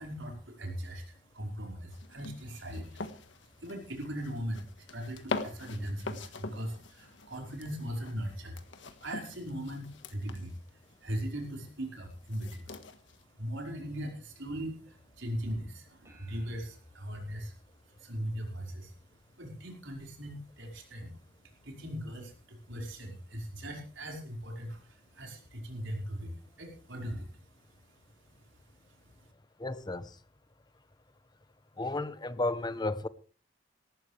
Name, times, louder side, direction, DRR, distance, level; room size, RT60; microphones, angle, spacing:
voice 1, 0.0-3.0 3.6-13.0 13.3-17.5 17.9-18.9 19.4-27.4 27.7-28.0 28.3-28.5 29.0-29.1, equal, 75° right, 5.0 m, -39 dB
sound 1, 1.9-13.2, left 3 dB, 70° left, 1.6 m, -43 dB
sound 2, 16.0-18.7, equal, 15° right, 5.5 m, -58 dB
voice 2, 29.6-30.1 31.8-33.1, left 2 dB, 20° left, 0.8 m, -33 dB
18.5 x 14.5 x 3.4 m
head